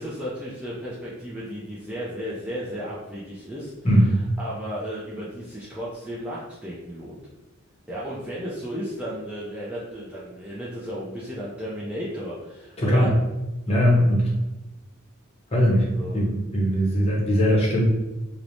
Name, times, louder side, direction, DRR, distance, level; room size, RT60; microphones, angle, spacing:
voice 1, 0.0-7.2 7.9-13.1 15.9-16.2, equal, 5° right, -7 dB, 0.3 m, -34 dB
voice 2, 12.8-13.1 13.7-14.2 15.5-15.9 16.1-17.8, equal, 30° left, -3 dB, 0.7 m, -20 dB
3.0 x 2.0 x 2.5 m, 1.0 s
head